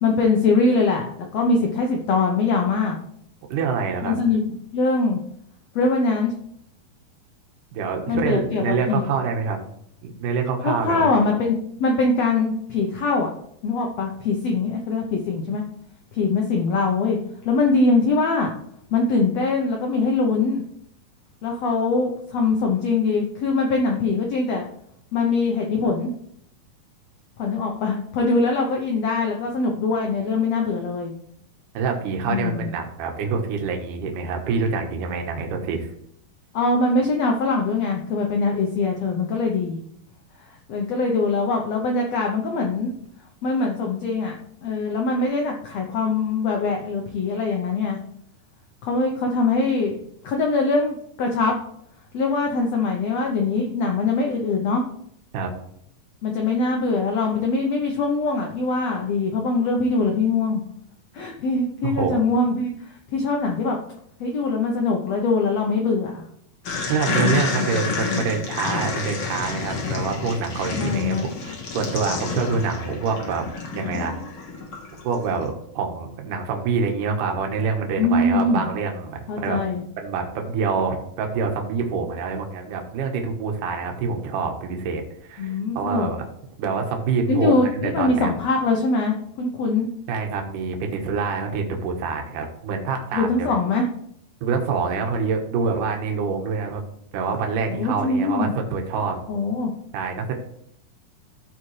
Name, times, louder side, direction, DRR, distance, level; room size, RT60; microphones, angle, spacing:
voice 1, 0.0-3.0 4.0-4.4 4.7-5.2 5.7-6.3 8.1-9.0 10.6-13.3 13.6-15.6 16.1-17.2 17.4-18.5 18.9-20.6 21.4-24.7 25.1-26.1 27.4-31.1 32.3-32.7 36.5-39.8 40.4-42.9 43.4-48.0 48.8-50.0 50.2-51.6 52.1-54.8 56.2-60.6 61.1-63.8 64.2-66.3 67.2-68.4 70.7-71.3 78.0-78.6 79.3-79.8 85.4-86.1 87.3-89.9 93.1-93.9 97.7-98.5 99.3-99.7, left 3 dB, 80° left, 1 dB, 1.5 m, -22 dB
voice 2, 3.5-4.2 7.7-9.6 10.0-11.1 31.7-35.9 55.3-55.5 61.8-62.2 66.9-71.2 71.5-73.5 73.7-74.2 75.0-79.6 80.0-86.2 86.6-88.3 90.1-93.5 94.4-96.8 97.1-99.2 99.9-100.4, right 5 dB, 70° right, 3 dB, 2.7 m, -26 dB
sound 1, 66.6-75.2, left 4 dB, 50° left, 1.8 m, -29 dB
14.0 x 5.0 x 3.2 m, 0.71 s
omnidirectional pair, 4.2 m